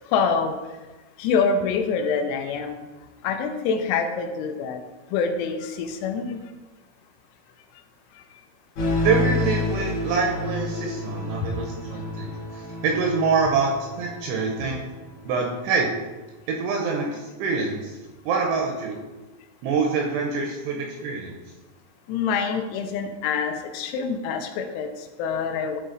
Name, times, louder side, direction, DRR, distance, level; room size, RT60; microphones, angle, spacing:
voice 1, 0.1-0.6 1.2-2.8 3.2-4.8 5.1-6.4 22.1-25.8, left 5 dB, 90° left, 6 dB, 3.5 m, -25 dB
sound 1, 8.7-15.6, left 2 dB, 70° left, 1.7 m, -30 dB
voice 2, 9.0-14.8 15.3-15.9 16.5-18.0 18.3-19.0 19.6-21.3, right 4 dB, 90° right, 1 dB, 2.7 m, -25 dB
12.0 x 4.1 x 3.9 m, 1.2 s
omnidirectional pair, 6.0 m